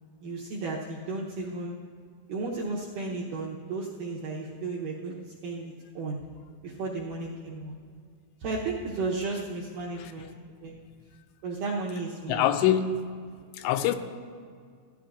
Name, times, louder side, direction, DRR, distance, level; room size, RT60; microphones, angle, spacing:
voice 1, 0.2-1.7 2.3-5.1 5.4-6.2 6.6-7.8 8.4-10.3 10.6-10.7 11.4-12.4, right 3 dB, 75° right, 2.0 m, -33 dB
voice 2, 12.3-13.2 13.5-14.0, left 10 dB, 85° left, 2.7 m, -25 dB
16.0 x 11.0 x 2.5 m
omnidirectional pair, 4.9 m